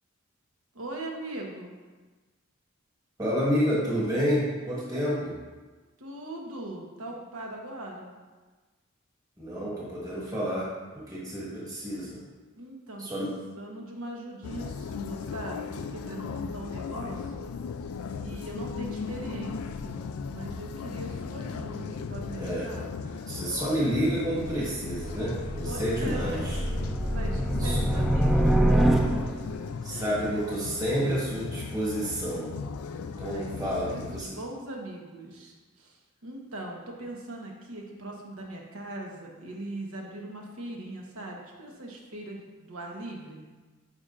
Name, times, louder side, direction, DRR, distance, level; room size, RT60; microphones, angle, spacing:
voice 1, 0.7-1.7 6.0-8.1 12.6-17.5 18.2-20.0 20.3-22.9 25.6-26.4 27.1-28.6 29.9-30.2 31.0-31.4 33.2-43.4, right 1 dB, 80° right, 0 dB, 1.1 m, -40 dB
voice 2, 3.2-5.4 9.4-12.2 13.0-13.4 22.4-22.7 23.3-26.6 27.6-27.8 29.8-32.5 33.2-34.4, equal, 15° right, -7 dB, 1.4 m, -29 dB
sound 1, 14.4-34.2, left 5 dB, 90° left, 0.4 m, -37 dB
sound 2, 24.3-29.6, right 1 dB, ahead, 0.4 m, -26 dB
9.5 x 5.4 x 2.5 m, 1.3 s
head